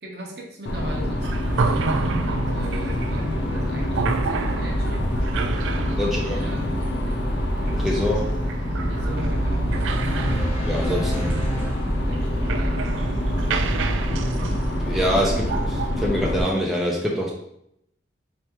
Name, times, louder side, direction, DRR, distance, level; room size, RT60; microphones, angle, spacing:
voice 1, 0.0-5.1 5.5-6.7 7.6-7.9 8.9-9.7 10.7-11.7 12.0-13.0, right 1 dB, 60° right, 0 dB, 0.9 m, -40 dB
sound 1, 0.7-16.4, equal, 65° left, 0.6 m, -25 dB
sound 2, 1.2-15.9, right 5 dB, 85° right, 0.3 m, -31 dB
voice 2, 6.0-6.4 7.8-8.3 10.6-11.3 14.5-17.3, equal, ahead, -4 dB, 0.5 m, -25 dB
sound 3, 9.7-12.4, equal, 35° left, 1.5 m, -34 dB
4.4 x 3.4 x 3.0 m, 0.75 s
head